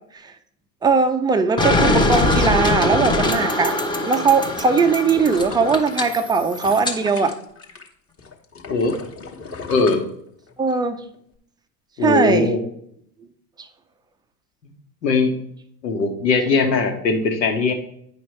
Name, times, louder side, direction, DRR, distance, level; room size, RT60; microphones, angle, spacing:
voice 1, 0.8-3.8 4.0-7.4 10.6-11.0 12.0-12.5, right 4 dB, 10° right, 7 dB, 0.5 m, -19 dB
sound 1, 1.6-7.0, left 1 dB, 10° left, 0.9 m, -22 dB
sound 2, 3.8-7.9 8.2-10.7 11.1-11.2, left 4 dB, 25° left, 1.3 m, -37 dB
voice 2, 9.7-10.0 12.0-12.6 15.0-15.3 15.8-17.7, left 4 dB, 80° left, 3 dB, 1.6 m, -19 dB
9.0 x 5.3 x 3.2 m, 0.69 s
hypercardioid pair, 90°, 50 cm